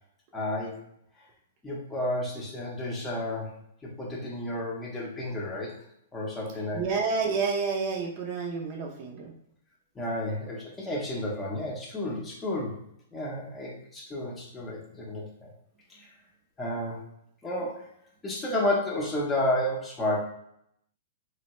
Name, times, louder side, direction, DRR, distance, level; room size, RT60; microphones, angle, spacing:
voice 1, 0.3-0.8 1.6-3.5 3.8-5.8 6.1-6.8 10.0-12.8 13.1-15.2 15.9-16.1 16.6-17.0 17.4-17.9 18.2-20.2, left 1 dB, 10° left, -4 dB, 0.7 m, -31 dB
voice 2, 6.7-9.3, right 4 dB, 35° right, 0 dB, 0.5 m, -29 dB
3.1 x 2.2 x 3.0 m, 0.75 s
hypercardioid pair, 155°, 0 cm